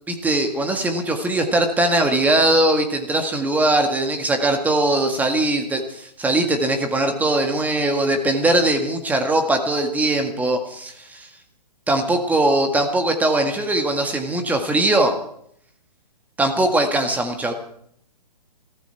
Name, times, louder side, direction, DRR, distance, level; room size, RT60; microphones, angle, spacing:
voice 1, 0.1-11.3 11.9-15.2 16.4-17.5, right 2 dB, 5° right, 4 dB, 1.8 m, -20 dB
21.5 x 15.0 x 4.5 m, 0.67 s
figure-of-eight pair, 130°, 21 cm